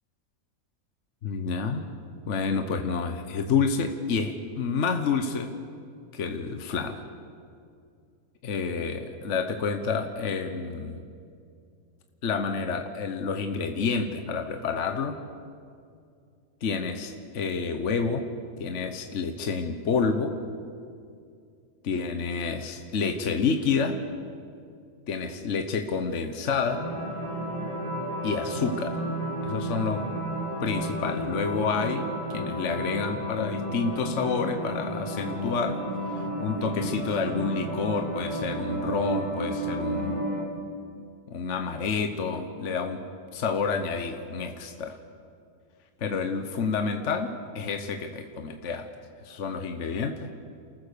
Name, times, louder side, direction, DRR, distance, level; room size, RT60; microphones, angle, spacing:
voice 1, 1.2-1.9 2.3-5.5 6.1-7.0 8.4-11.0 12.2-15.2 16.6-18.2 18.6-20.3 21.8-24.0 25.1-26.8 28.2-29.0 29.4-30.1 30.6-35.8 36.1-40.2 41.3-43.0 43.3-45.0 46.0-48.9 49.2-50.3, left 5 dB, 55° left, 6 dB, 1.4 m, -29 dB
sound 1, 26.7-40.4, right 1 dB, 30° right, 3.1 m, -32 dB
29.5 x 14.5 x 6.8 m, 2.4 s
omnidirectional pair, 1.5 m